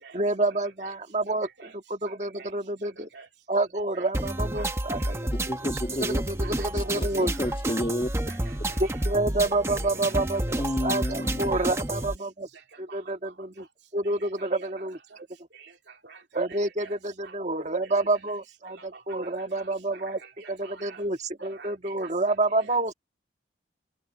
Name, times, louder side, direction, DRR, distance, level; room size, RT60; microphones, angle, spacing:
voice 1, 0.1-1.5 1.9-3.1 3.5-5.2 6.0-7.3 8.8-12.5 12.8-13.6 13.9-15.0 16.3-20.2 20.5-22.9, right 2 dB, 35° right, 1.7 m, -28 dB
voice 2, 2.1-2.5 3.1-3.3 3.9-4.1 4.5-4.7 5.0-5.2 6.4-7.0 7.4-7.5 8.3-9.0 9.7-9.8 10.1-10.2 11.2-11.6 11.9-12.0 12.9-13.0 13.2-13.3 14.4-14.7 15.6-15.7 16.0-16.2 16.5-16.9 17.2-18.1 18.6-18.9 19.2-19.3 19.6-21.0 21.5-22.1 22.5-22.8, right 4 dB, 65° right, 2.8 m, -47 dB
sound 1, 4.1-12.2, right 1 dB, 15° right, 0.9 m, -30 dB
voice 3, 5.5-6.2 6.7-8.1 10.6-11.6, left 1 dB, 25° left, 1.5 m, -31 dB
head